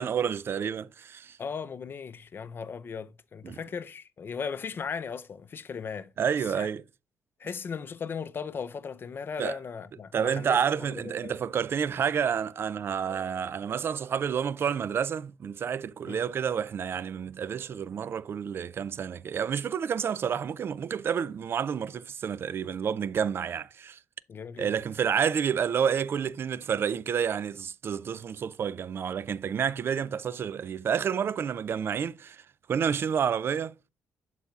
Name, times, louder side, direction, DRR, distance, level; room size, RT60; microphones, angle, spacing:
voice 1, 0.0-1.4 3.4-3.6 6.2-6.8 9.4-9.6 10.1-24.0 24.6-32.4 32.7-33.7, right 7 dB, 50° right, 0.3 m, -29 dB
voice 2, 1.4-6.1 6.5-6.7 7.4-10.6 10.9-11.4 16.0-16.2 24.3-24.7, left 6 dB, 45° left, 0.5 m, -37 dB
11.0 x 4.2 x 2.4 m
supercardioid pair, 65°, 5 cm